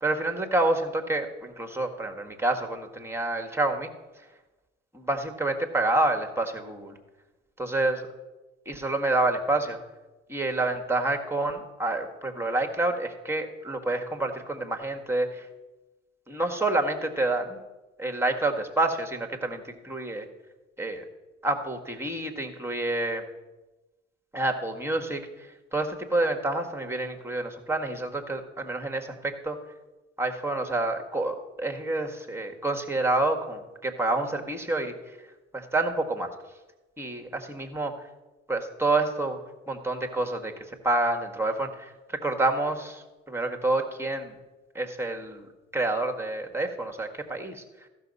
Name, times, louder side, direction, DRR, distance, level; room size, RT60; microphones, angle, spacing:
voice 1, 0.0-3.9 4.9-7.0 7.6-8.1 8.7-9.8 10.3-15.5 16.3-17.6 18.0-20.3 20.8-21.0 21.4-23.2 24.3-29.6 30.2-34.9 35.5-36.3 37.0-37.9 38.5-39.4 39.7-40.5 40.8-44.4 44.8-45.4 45.7-47.6, right 2 dB, 5° right, 4 dB, 1.7 m, -28 dB
14.5 x 6.2 x 5.5 m, 1.1 s
hypercardioid pair, 50°, 36 cm